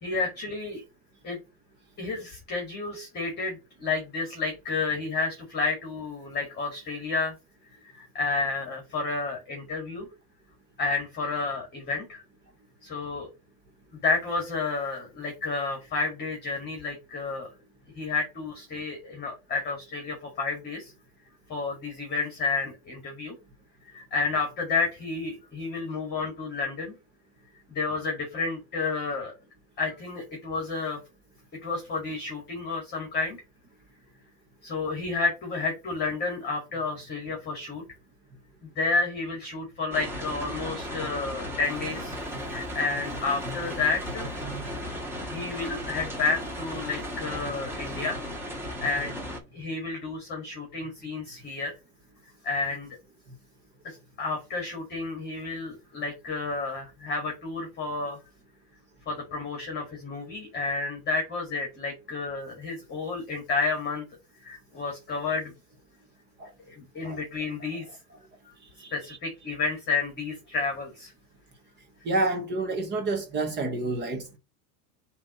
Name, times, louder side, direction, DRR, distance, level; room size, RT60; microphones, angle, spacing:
voice 1, 0.0-0.8 1.2-1.4 2.0-7.3 7.8-10.1 10.8-12.2 12.8-13.3 13.9-17.5 18.0-20.9 21.5-23.3 23.9-26.9 27.7-29.3 29.8-31.0 31.6-33.4 34.6-37.8 38.6-44.4 45.3-48.2 48.8-49.1 49.5-51.7 52.4-52.9 53.8-58.2 59.1-64.0 64.4-65.5 66.7-67.8 68.4-68.5 68.9-71.1, left 4 dB, 20° left, 2.0 m, -31 dB
sound 1, 39.9-49.4, equal, 5° right, 1.6 m, -35 dB
voice 2, 68.8-69.2 72.0-74.4, right 2 dB, 25° right, 0.9 m, -29 dB
7.4 x 3.0 x 5.5 m
supercardioid pair, 160°, 44 cm